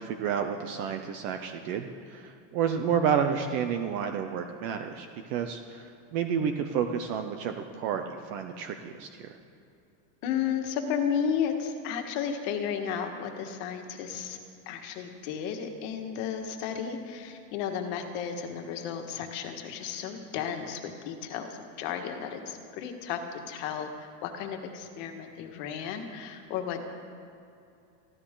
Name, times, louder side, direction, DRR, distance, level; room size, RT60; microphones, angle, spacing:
voice 1, 0.0-9.4, right 7 dB, 25° right, 6 dB, 0.4 m, -30 dB
voice 2, 10.2-14.4 14.6-21.5 21.8-26.8, left 7 dB, 50° left, 5 dB, 1.7 m, -33 dB
24.0 x 15.5 x 3.8 m, 2.6 s
supercardioid pair, 170°, 49 cm